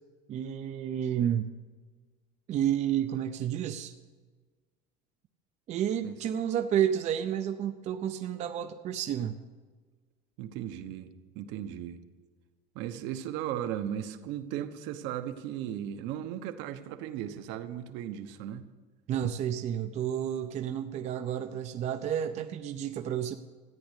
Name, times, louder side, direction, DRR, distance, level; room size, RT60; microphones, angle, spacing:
voice 1, 0.3-1.5 2.5-3.9 5.7-9.4 19.1-23.4, right 10 dB, 35° right, 7 dB, 0.6 m, -30 dB
voice 2, 10.4-12.0 12.7-18.6, right 10 dB, 65° right, 8 dB, 1.1 m, -36 dB
14.0 x 10.0 x 8.2 m, 1.4 s
cardioid pair, 165°, 20 cm